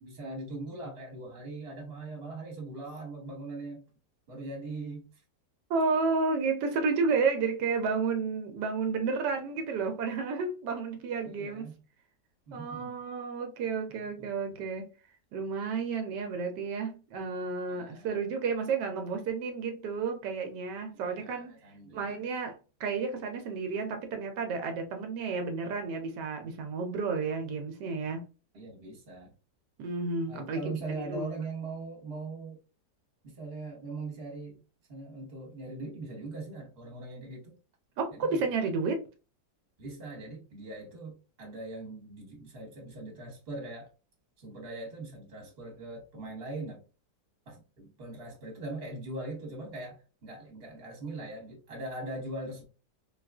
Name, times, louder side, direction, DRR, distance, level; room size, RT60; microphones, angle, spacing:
voice 1, 0.0-3.8 4.3-5.1 11.2-11.7 12.5-12.9 14.2-14.3 17.7-18.2 20.9-22.1 28.5-29.3 30.3-32.6 33.2-34.6 34.9-37.5 38.1-38.5 39.8-43.9 44.4-46.8 47.5-50.0 50.2-52.7, right 2 dB, 40° right, 1.2 m, -41 dB
voice 2, 5.7-11.7 12.5-14.9 15.3-21.5 21.9-28.2 29.8-30.6 31.0-31.3 38.0-39.0, right 4 dB, 80° right, 1.2 m, -31 dB
3.7 x 2.3 x 2.3 m
omnidirectional pair, 1.8 m